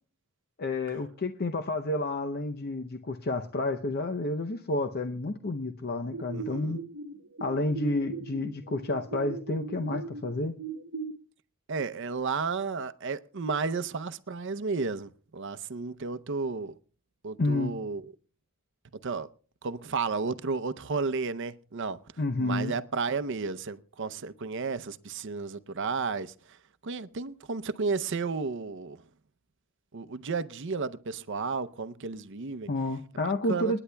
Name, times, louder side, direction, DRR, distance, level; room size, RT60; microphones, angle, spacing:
voice 1, 0.6-6.8 7.4-10.5 17.4-17.7 22.2-22.7 32.7-33.8, left 2 dB, 50° left, 0.7 m, -30 dB
sound 1, 6.1-11.1, right 4 dB, 80° right, 0.9 m, -39 dB
voice 2, 6.3-6.8 11.7-16.8 17.2-18.0 18.9-19.3 19.6-22.0 22.4-26.6 26.8-29.0 29.9-32.7 33.2-33.8, right 4 dB, 60° right, 0.6 m, -33 dB
28.5 x 9.9 x 2.2 m
head